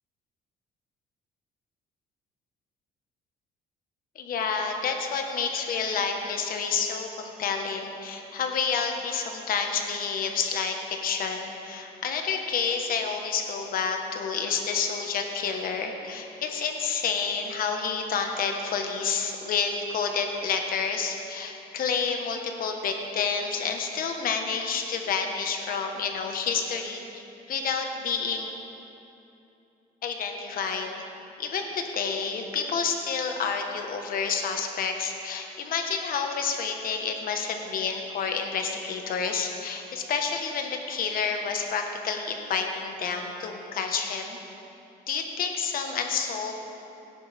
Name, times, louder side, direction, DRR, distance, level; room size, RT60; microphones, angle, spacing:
voice 1, 4.1-28.5 30.0-30.9 31.4-44.4 45.1-46.5, left 5 dB, 60° left, 4 dB, 1.4 m, -29 dB
17.5 x 10.0 x 3.5 m, 2.9 s
cardioid pair, 110°, 17 cm